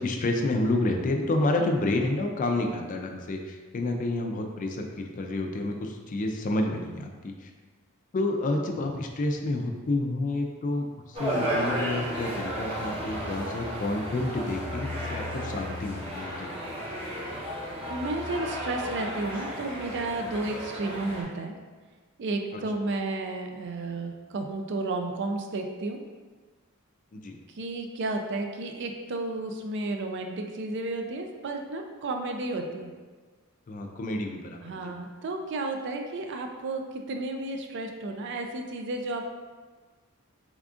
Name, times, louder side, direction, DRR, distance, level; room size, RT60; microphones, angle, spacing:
voice 1, 0.0-7.5 8.1-16.5 22.5-22.6 27.1-27.3 33.7-34.9, left 2 dB, 40° left, 3 dB, 0.3 m, -29 dB
sound 1, 11.1-21.2, equal, 25° right, 0.8 m, -33 dB
voice 2, 17.9-21.5 22.2-26.0 27.5-32.9 34.6-39.3, right 2 dB, 55° right, 4 dB, 0.4 m, -32 dB
3.6 x 3.5 x 2.4 m, 1.4 s
head